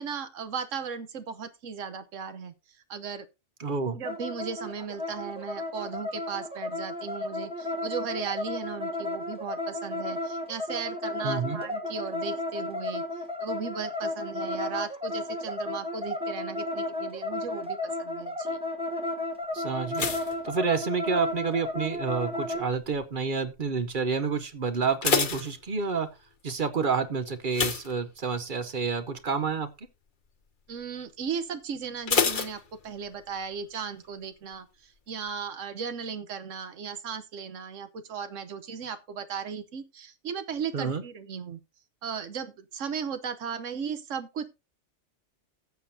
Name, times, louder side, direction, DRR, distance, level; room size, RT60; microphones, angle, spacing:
voice 1, 0.0-2.5 2.9-3.3 3.9-13.0 13.4-18.6 30.7-41.6 42.0-44.5, right 6 dB, 90° right, 1.3 m, -36 dB
voice 2, 3.6-4.0 11.2-11.6 19.5-20.1 20.4-26.1 26.4-29.7 40.7-41.0, right 5 dB, 45° right, 0.9 m, -29 dB
sound 1, 4.0-22.7, left 2 dB, 5° right, 1.0 m, -33 dB
sound 2, 19.9-21.4 21.7-22.2 22.8-23.2 23.4-23.5 23.9-24.0 24.7-26.2 27.5-28.6 29.0-29.3 29.6-29.7 32.1-33.3 33.5-33.6, left 5 dB, 45° left, 1.0 m, -29 dB
15.0 x 7.2 x 2.7 m
omnidirectional pair, 1.3 m